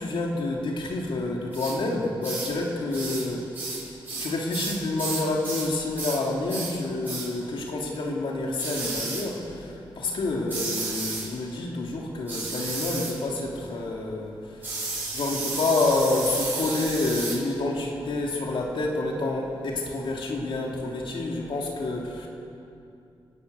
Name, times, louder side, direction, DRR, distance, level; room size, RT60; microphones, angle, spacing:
voice 1, 0.0-3.5 4.2-9.7 10.0-14.3 15.1-22.3, left 2 dB, 75° left, -1 dB, 3.1 m, -28 dB
sound 1, 1.5-1.8 2.2-2.5 2.9-3.3 3.5-5.7 6.0-6.2 6.5-6.8 7.0-7.3 8.6-9.3 10.5-11.3 12.3-13.2 14.6-17.4, right 3 dB, 20° right, 6.9 m, -32 dB
28.0 x 12.5 x 8.5 m, 2.6 s
wide cardioid pair, 180°, 9 cm